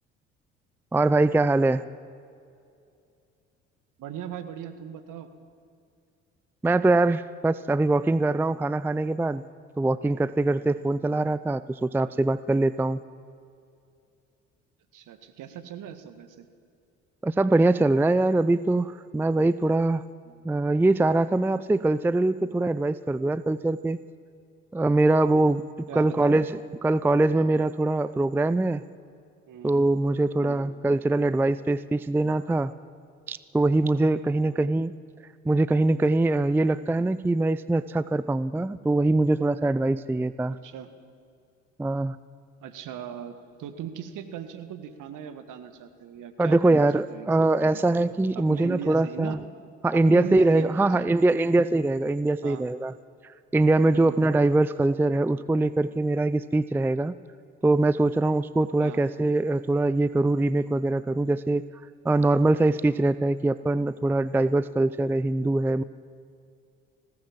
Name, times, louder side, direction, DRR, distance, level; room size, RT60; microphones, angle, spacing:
voice 1, 0.9-1.8 6.6-9.4 9.8-13.0 17.2-20.0 20.4-24.0 24.7-25.6 26.0-28.8 29.6-32.7 33.3-34.9 35.5-40.6 41.8-42.2 46.4-49.4 49.8-52.9 53.2-57.2 57.6-61.6 62.0-65.8, right 2 dB, 5° right, 16 dB, 0.5 m, -23 dB
voice 2, 4.0-5.3 14.9-16.5 25.9-26.4 29.5-29.8 30.4-30.7 34.5-34.7 40.6-40.9 42.6-48.0 48.4-49.4 49.9-51.6 52.4-52.6 53.9-54.2 58.8-59.0, right 9 dB, 55° right, 9 dB, 1.9 m, -39 dB
20.5 x 17.5 x 7.5 m, 2.4 s
hypercardioid pair, 55°, 36 cm